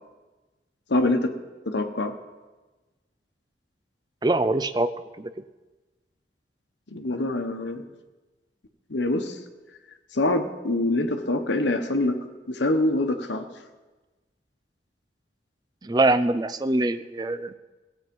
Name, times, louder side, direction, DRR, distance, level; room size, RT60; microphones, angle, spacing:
voice 1, 0.9-1.3 1.7-2.1 6.9-7.9 8.9-9.3 10.1-12.2 12.5-13.4, left 2 dB, 80° left, 6 dB, 1.1 m, -24 dB
voice 2, 4.2-4.9 5.2-5.3 15.8-17.5, right 2 dB, 20° right, 12 dB, 0.4 m, -23 dB
16.5 x 8.2 x 5.3 m, 1.2 s
head